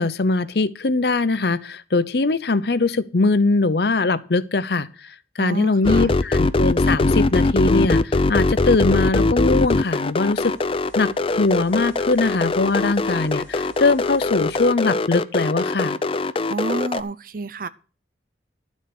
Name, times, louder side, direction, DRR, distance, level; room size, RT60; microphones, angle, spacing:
voice 1, 0.0-10.5 11.0-11.1 11.4-16.0, left 3 dB, 65° left, 0.7 m, -21 dB
voice 2, 5.4-6.1 16.5-17.7, right 3 dB, 50° right, 0.7 m, -29 dB
sound 1, 5.8-17.0, left 2 dB, 30° left, 0.5 m, -21 dB
sound 2, 8.9-14.7, left 1 dB, 10° left, 4.5 m, -49 dB
12.0 x 7.2 x 6.1 m
head